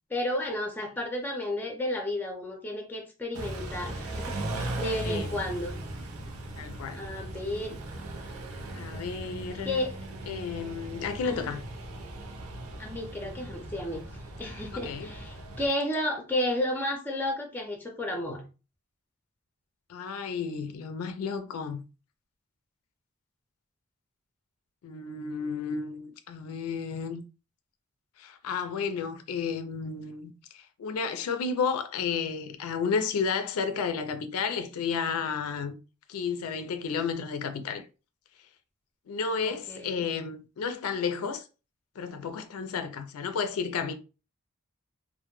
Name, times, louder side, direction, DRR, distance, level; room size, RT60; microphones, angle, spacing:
voice 1, 0.1-5.8 6.9-7.8 9.6-10.0 11.2-11.6 12.8-18.5 39.4-40.1, left 1 dB, 10° left, 0.5 m, -32 dB
Car / Idling / Accelerating revving vroom, 3.3-15.7, right 2 dB, 85° right, 0.5 m, -38 dB
voice 2, 6.6-7.0 8.7-9.8 10.3-11.6 14.7-15.1 19.9-21.8 24.8-27.2 28.2-35.8 36.1-37.8 39.1-41.5 42.0-43.9, left 5 dB, 90° left, 0.4 m, -32 dB
2.1 x 2.1 x 3.0 m
head